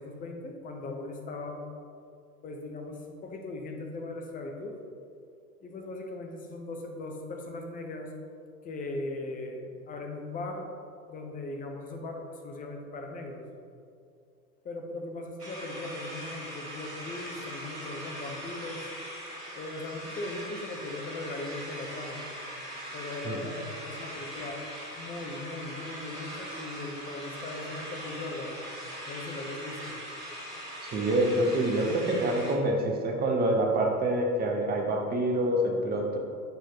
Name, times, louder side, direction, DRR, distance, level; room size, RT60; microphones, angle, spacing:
voice 1, 0.0-1.7 2.4-4.7 5.6-8.1 8.6-10.7 11.0-13.4 14.6-18.9 19.5-22.2 22.9-24.6 24.9-28.6 29.1-30.0, left 2 dB, 20° left, 2 dB, 0.7 m, -39 dB
sound 1, 15.4-32.5, equal, 90° right, 1.6 m, -41 dB
voice 2, 30.8-36.2, right 1 dB, 20° right, 1 dB, 0.9 m, -26 dB
6.9 x 4.4 x 3.9 m, 2.4 s
figure-of-eight pair, 90°, 46 cm